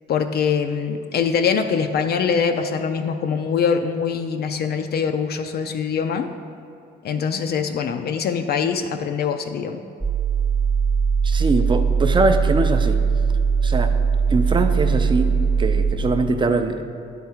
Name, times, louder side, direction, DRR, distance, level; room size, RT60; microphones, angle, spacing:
voice 1, 0.1-6.3 7.0-9.8, left 6 dB, 55° left, 7 dB, 0.4 m, -23 dB
sound 1, 10.0-15.9, right 5 dB, 5° right, 0.8 m, -20 dB
voice 2, 11.2-13.0 13.6-13.9 14.3-16.8, right 3 dB, 25° right, 7 dB, 0.5 m, -22 dB
9.5 x 3.6 x 4.4 m, 2.7 s
cardioid pair, 90°, 20 cm